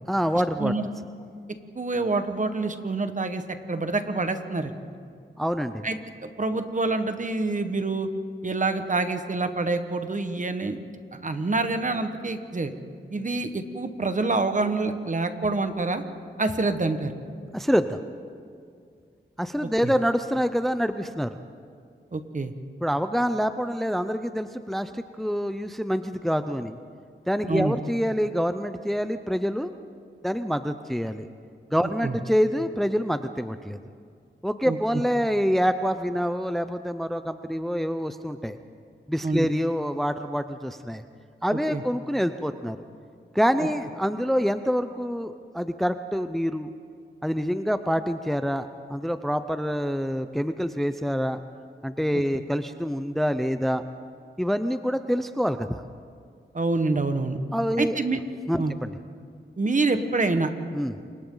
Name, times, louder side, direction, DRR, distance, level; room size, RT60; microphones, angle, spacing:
voice 1, 0.1-0.7 5.4-5.9 17.5-18.0 19.4-21.4 22.8-26.8 27.3-29.7 30.2-31.3 31.7-33.8 34.4-38.6 39.1-41.0 41.4-42.8 43.3-46.7 47.2-51.4 51.8-53.8 54.4-55.8 57.5-58.0 58.5-58.9 60.7-61.0, equal, ahead, 10 dB, 0.6 m, -26 dB
voice 2, 1.7-3.4 3.7-4.7 5.8-8.1 8.4-10.8 11.1-12.7 13.1-16.0 16.4-17.1 19.8-19.9 22.1-22.5 27.5-27.8 32.0-32.2 34.6-34.8 39.2-39.5 41.7-41.8 56.5-57.4 57.8-58.2 58.6-58.7 59.6-60.5, right 3 dB, 40° right, 8 dB, 1.5 m, -26 dB
28.5 x 24.5 x 3.9 m, 2.2 s
cardioid pair, 65°, 19 cm